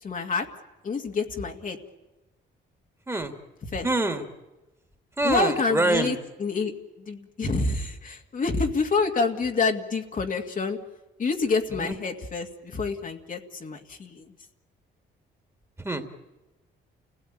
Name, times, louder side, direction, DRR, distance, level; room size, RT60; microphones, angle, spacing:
voice 1, 0.0-0.5 0.8-1.8 3.7-3.9 5.2-6.7 7.0-10.8 11.2-14.3, left 4 dB, 40° left, 3 dB, 2.2 m, -27 dB
voice 2, 3.8-4.2 5.2-6.1 11.8-12.0 15.8-16.2, right 2 dB, 15° right, 6 dB, 2.7 m, -26 dB
29.0 x 17.0 x 9.1 m, 1.1 s
cardioid pair, 90°, 20 cm